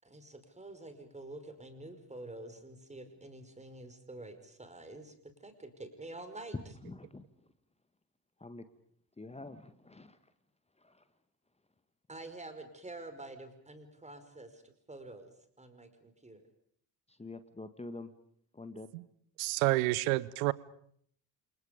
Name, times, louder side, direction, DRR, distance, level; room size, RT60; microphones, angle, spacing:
voice 1, 0.0-6.6 12.1-16.5, right 2 dB, 15° right, 5.3 m, -48 dB
voice 2, 6.8-7.5 8.4-8.7 9.2-10.3 10.8-11.1 17.1-18.1 18.5-18.9, left 2 dB, 15° left, 1.8 m, -47 dB
voice 3, 19.4-20.5, right 21 dB, 65° right, 1.1 m, -29 dB
29.0 x 28.5 x 5.2 m
figure-of-eight pair, 50°, 47 cm